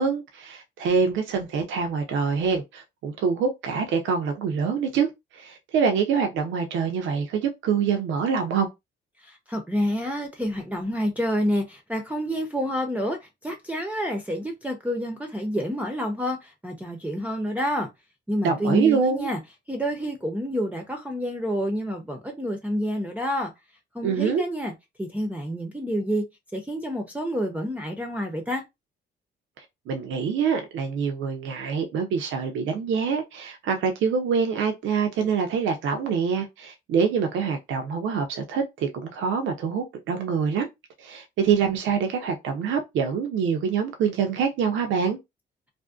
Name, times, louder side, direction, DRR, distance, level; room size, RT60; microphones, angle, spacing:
voice 1, 0.0-5.1 5.3-8.7 18.4-19.3 24.0-24.4 29.9-40.7 41.0-45.2, right 6 dB, 75° right, 0.6 m, -25 dB
voice 2, 9.2-17.9 18.3-19.4 19.7-23.5 23.9-24.7 25.0-26.2 26.5-28.6, equal, 5° right, 0.5 m, -28 dB
2.5 x 2.0 x 2.3 m
cardioid pair, 90°, 20 cm